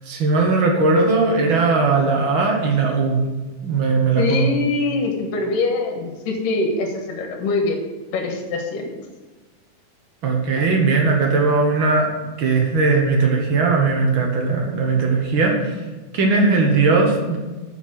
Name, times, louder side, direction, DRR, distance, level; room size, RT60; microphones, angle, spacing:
voice 1, 0.1-3.2 3.6-4.5 10.2-12.1 12.4-15.7 16.1-17.4, right 3 dB, 60° right, 1 dB, 1.4 m, -18 dB
voice 2, 4.1-7.8 8.1-8.9, left 3 dB, 70° left, 2 dB, 3.0 m, -23 dB
7.1 x 6.7 x 7.6 m, 1.2 s
omnidirectional pair, 4.0 m